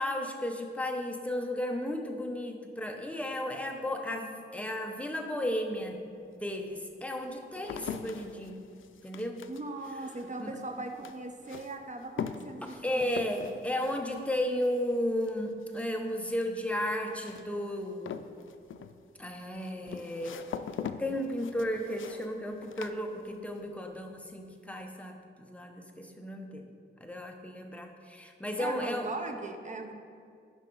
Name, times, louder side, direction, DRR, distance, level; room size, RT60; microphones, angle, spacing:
voice 1, 0.0-6.0 6.4-8.6 9.0-9.4 10.4-10.6 12.8-18.2 19.2-20.4 21.0-26.7 27.0-29.1, left 1 dB, 5° left, 3 dB, 0.7 m, -34 dB
sound 1, 5.7-5.8 6.5-23.7 24.0-24.5, left 7 dB, 75° left, 0.4 m, -43 dB
voice 2, 9.5-13.5 28.6-29.9, right 2 dB, 35° right, 5 dB, 0.7 m, -39 dB
9.7 x 5.5 x 3.8 m, 2.3 s
wide cardioid pair, 105°, 20 cm